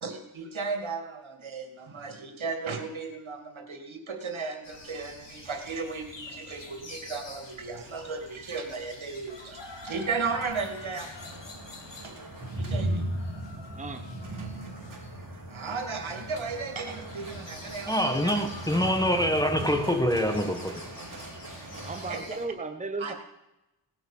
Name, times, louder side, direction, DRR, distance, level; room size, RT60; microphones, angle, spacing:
voice 1, 0.0-11.1 12.0-12.1 12.5-13.0 15.5-18.4 22.1-22.4 23.0-23.1, right 4 dB, 80° right, 5 dB, 2.5 m, -35 dB
sound 1, 4.6-22.5, left 3 dB, 65° left, 2.5 m, -47 dB
sound 2, 9.8-22.1, right 1 dB, 40° right, 3.6 m, -38 dB
voice 2, 13.7-14.1 21.8-23.1, right 3 dB, 15° right, 6 dB, 1.1 m, -35 dB
voice 3, 17.9-20.8, equal, 10° left, 7 dB, 1.4 m, -25 dB
18.0 x 9.2 x 7.2 m, 0.92 s
wide cardioid pair, 105°, 47 cm